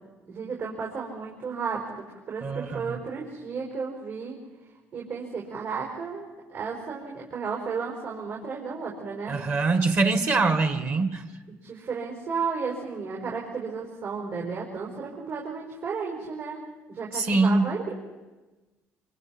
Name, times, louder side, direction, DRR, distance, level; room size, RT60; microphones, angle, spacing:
voice 1, 0.3-4.4 4.9-9.4 11.5-16.6 16.9-18.0, right 5 dB, 70° right, -2 dB, 4.8 m, -33 dB
voice 2, 2.4-3.0 9.3-11.2 17.1-17.7, right 3 dB, 45° right, 8 dB, 1.7 m, -24 dB
25.0 x 24.5 x 4.4 m, 1.2 s
supercardioid pair, 80°, 6 cm